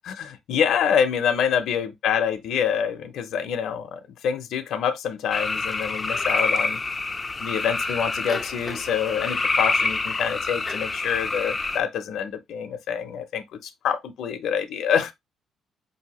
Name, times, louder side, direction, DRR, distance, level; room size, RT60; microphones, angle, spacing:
voice 1, 0.1-6.8 7.4-15.1, left 8 dB, 70° left, 0.6 m, -26 dB
sound 1, 5.3-11.8, left 3 dB, 20° left, 0.4 m, -27 dB
5.2 x 2.7 x 2.9 m
cardioid pair, 145°, 0 cm